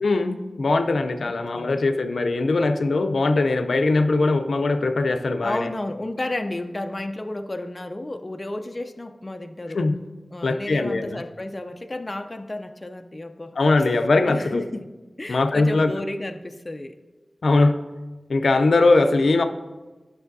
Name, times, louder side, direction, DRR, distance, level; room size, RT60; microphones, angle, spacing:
voice 1, 0.0-5.7 9.7-9.9 10.4-11.2 13.6-14.6 15.3-15.9 17.4-17.8 18.3-19.4, left 3 dB, 85° left, 7 dB, 0.4 m, -21 dB
voice 2, 1.2-1.8 5.4-9.8 10.3-13.5 14.3-17.0, left 1 dB, 30° left, 7 dB, 0.4 m, -32 dB
11.0 x 6.1 x 2.6 m, 1.2 s
wide cardioid pair, 80°, 0 cm